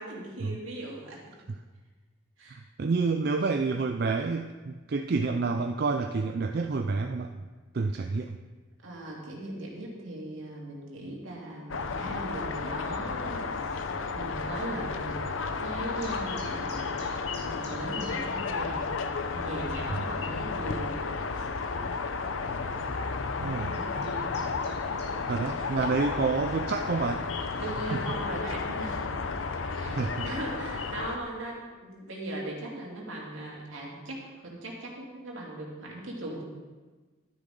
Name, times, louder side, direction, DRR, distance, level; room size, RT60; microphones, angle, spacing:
voice 1, 0.0-1.4 2.4-2.6 7.9-8.1 8.8-15.2 15.6-16.9 17.4-18.9 19.3-21.0 21.3-21.5 23.4-24.3 25.0-25.3 27.6-29.0 29.7-36.4, right 1 dB, 75° right, -3 dB, 2.7 m, -39 dB
voice 2, 2.5-7.3 7.7-8.4 23.4-23.7 25.3-27.3 27.9-28.0 29.9-30.2, right 4 dB, 50° right, 6 dB, 0.4 m, -28 dB
sound 1, 11.7-31.2, left 4 dB, 80° left, 0.7 m, -32 dB
sound 2, 15.0-28.0, left 1 dB, 25° left, 2.4 m, -55 dB
sound 3, 16.0-18.1 18.4-18.5 19.0-19.1 19.4-19.8 20.4-20.5 21.8-22.0 22.7-22.9 23.5-25.1, left 2 dB, 55° left, 2.5 m, -49 dB
12.0 x 10.0 x 3.8 m, 1.3 s
head